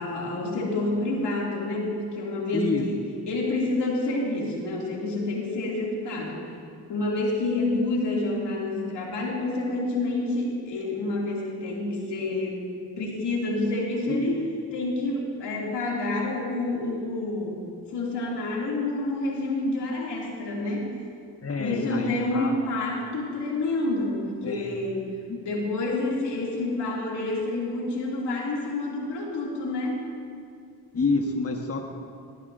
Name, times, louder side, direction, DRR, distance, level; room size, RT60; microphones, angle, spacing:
voice 1, 0.0-3.0 3.3-6.4 6.9-12.6 13.0-14.4 14.7-17.6 17.9-20.9 21.6-25.0 25.4-30.0, left 2 dB, 75° left, -3 dB, 2.8 m, -28 dB
voice 2, 2.5-2.8 14.1-14.3 21.4-22.6 24.4-24.8 25.3-25.4 30.9-31.8, left 4 dB, 35° left, 2 dB, 1.3 m, -28 dB
18.5 x 13.0 x 2.7 m, 2.3 s
supercardioid pair, 45°, 41 cm